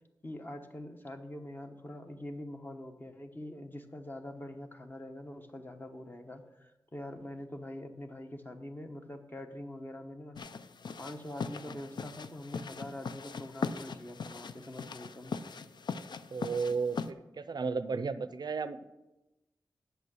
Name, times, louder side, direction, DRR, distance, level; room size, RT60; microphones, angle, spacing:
voice 1, 0.2-10.4 11.0-15.4, left 1 dB, 25° left, 5 dB, 1.1 m, -44 dB
sound 1, 10.4-17.1, left 4 dB, 65° left, 0.5 m, -40 dB
voice 2, 16.3-18.8, right 4 dB, 60° right, 12 dB, 0.5 m, -34 dB
8.3 x 6.8 x 6.3 m, 1.0 s
cardioid pair, 65°, 8 cm